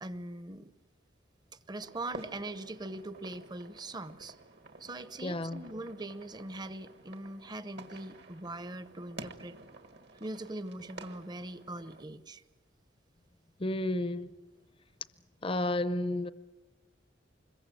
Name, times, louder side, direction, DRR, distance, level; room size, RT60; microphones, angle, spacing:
voice 1, 0.0-0.7 1.7-4.4 4.8-9.6 10.2-12.4, right 2 dB, 20° right, 0.8 m, -41 dB
sound 1, 1.8-12.0, right 3 dB, 60° right, 1.6 m, -51 dB
voice 2, 5.2-5.6 13.6-14.3 15.4-16.3, left 1 dB, 30° left, 0.7 m, -31 dB
25.5 x 22.0 x 7.7 m
head